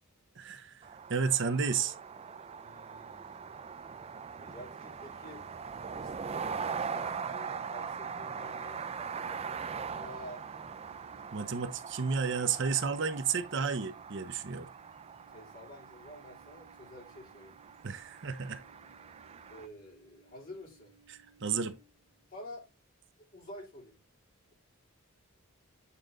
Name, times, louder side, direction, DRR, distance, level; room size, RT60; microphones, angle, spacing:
voice 1, 0.4-0.8 1.1-1.9 11.3-14.7 17.8-18.6 21.1-21.8, right 6 dB, 60° right, 0.8 m, -32 dB
sound 1, 0.8-19.7, right 6 dB, 30° right, 0.3 m, -41 dB
voice 2, 2.6-3.8 4.4-5.4 5.9-10.5 15.3-17.6 19.5-20.9 22.3-22.7 23.3-24.0, left 1 dB, 40° left, 3.0 m, -50 dB
sound 2, 8.3-22.3, right 5 dB, 75° left, 4.7 m, -65 dB
8.4 x 3.9 x 3.7 m
head